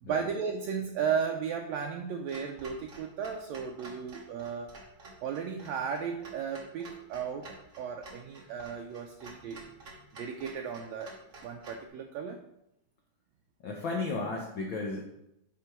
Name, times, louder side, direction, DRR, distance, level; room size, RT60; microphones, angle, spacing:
voice 1, 0.0-4.8 5.2-9.6 10.2-11.2 11.4-12.4, right 6 dB, 75° right, 3 dB, 1.7 m, -35 dB
Clock, 2.3-11.9, right 2 dB, 55° right, 0.8 m, -51 dB
voice 2, 13.6-15.0, left 3 dB, 70° left, 0 dB, 1.1 m, -34 dB
9.4 x 4.3 x 4.4 m, 0.81 s
omnidirectional pair, 3.4 m